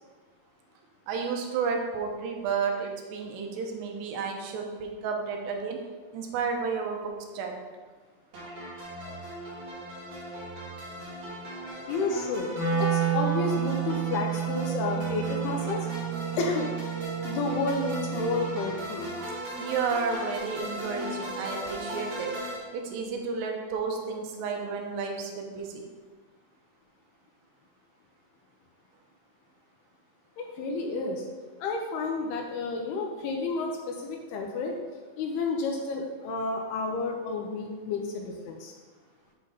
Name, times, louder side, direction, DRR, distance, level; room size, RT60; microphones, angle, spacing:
voice 1, 1.1-5.8 6.1-7.5 19.6-22.3 22.7-25.9, right 5 dB, 80° right, 2 dB, 2.9 m, -32 dB
sound 1, 8.3-22.6, right 1 dB, 50° right, 2.6 m, -38 dB
voice 2, 11.9-12.5 12.8-15.9 16.4-16.7 17.2-19.1 30.4-31.3 31.6-34.8 35.2-38.7, left 3 dB, 80° left, 2 dB, 2.5 m, -31 dB
Wind instrument woodwind instrument, 12.5-18.6, right 9 dB, 20° left, 1.2 m, -30 dB
7.4 x 6.1 x 3.9 m, 1.4 s
omnidirectional pair, 4.9 m